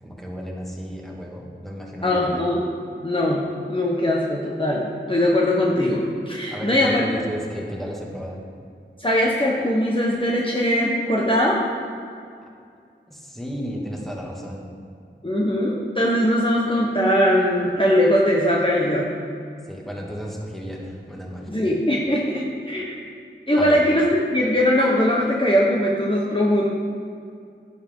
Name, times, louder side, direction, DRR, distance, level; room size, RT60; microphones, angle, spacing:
voice 1, 0.0-2.5 6.5-8.4 13.1-14.6 19.7-21.6 23.6-23.8, equal, ahead, -2 dB, 2.0 m, -33 dB
voice 2, 2.0-2.7 3.0-7.0 9.0-11.6 15.2-19.1 21.5-23.0 23.5-26.7, left 1 dB, 25° left, -4 dB, 1.2 m, -21 dB
11.0 x 10.0 x 3.8 m, 2.3 s
wide cardioid pair, 45°, 20 cm